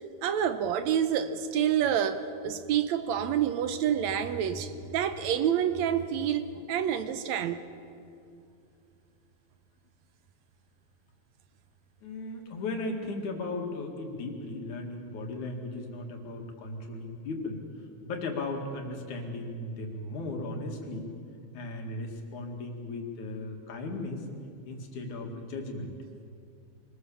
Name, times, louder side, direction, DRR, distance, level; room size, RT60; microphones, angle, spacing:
voice 1, 0.2-7.6, right 9 dB, 75° right, 11 dB, 2.2 m, -28 dB
voice 2, 12.0-17.6 18.0-21.1 21.5-24.2 24.7-25.9, left 2 dB, 80° left, 2 dB, 3.7 m, -36 dB
25.0 x 20.0 x 7.2 m, 2.4 s
omnidirectional pair, 3.3 m